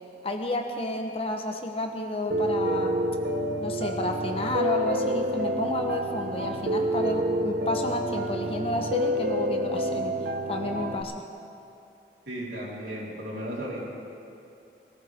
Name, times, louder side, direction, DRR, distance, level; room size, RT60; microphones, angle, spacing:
voice 1, 0.2-3.0 3.6-10.1 10.5-11.2, left 1 dB, 35° left, 3 dB, 1.1 m, -31 dB
Piano, 2.3-11.0, right 1 dB, 65° right, 0.8 m, -28 dB
voice 2, 12.3-13.9, equal, 85° right, -6 dB, 4.2 m, -35 dB
20.5 x 15.0 x 3.6 m, 2.7 s
head